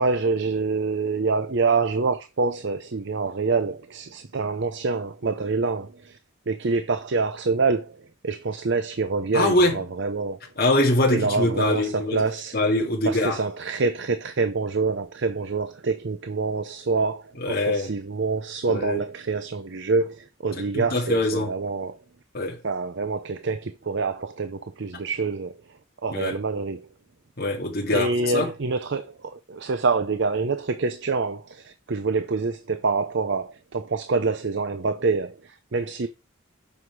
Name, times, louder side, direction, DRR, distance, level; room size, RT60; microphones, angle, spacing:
voice 1, 0.0-6.2 6.5-10.4 11.1-12.6 13.0-22.0 22.6-25.5 26.0-26.9 27.9-36.1, right 4 dB, 55° right, 0.6 m, -26 dB
voice 2, 9.3-9.8 10.6-12.2 12.5-13.4 17.4-17.9 18.7-19.0 20.7-21.5 22.3-22.6 26.1-26.3 27.4-28.5, left 1 dB, 45° left, 2.1 m, -23 dB
7.9 x 5.7 x 4.7 m
head